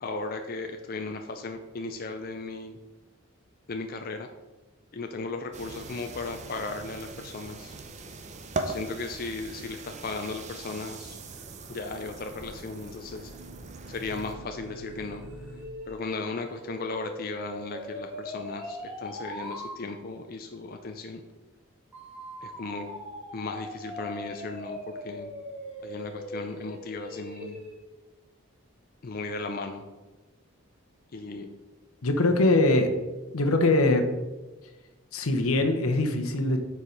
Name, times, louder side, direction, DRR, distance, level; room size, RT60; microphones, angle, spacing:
voice 1, 0.0-2.8 3.7-4.3 4.9-7.7 8.7-11.2 11.7-13.3 13.9-15.2 15.9-21.2 22.4-22.9 23.3-25.3 25.8-27.6 29.0-29.8 31.1-31.5, left 3 dB, 45° left, 5 dB, 0.4 m, -36 dB
sound 1, 5.5-14.4, right 3 dB, 30° right, 0.6 m, -40 dB
sound 2, 12.3-15.6, right 2 dB, 85° right, 0.8 m, -48 dB
sound 3, 14.5-19.7 21.9-27.8, equal, 10° right, 1.7 m, -41 dB
voice 2, 32.0-32.9 33.3-34.0 35.1-36.6, left 2 dB, 80° left, 6 dB, 0.9 m, -22 dB
6.9 x 4.7 x 5.1 m, 1.1 s
head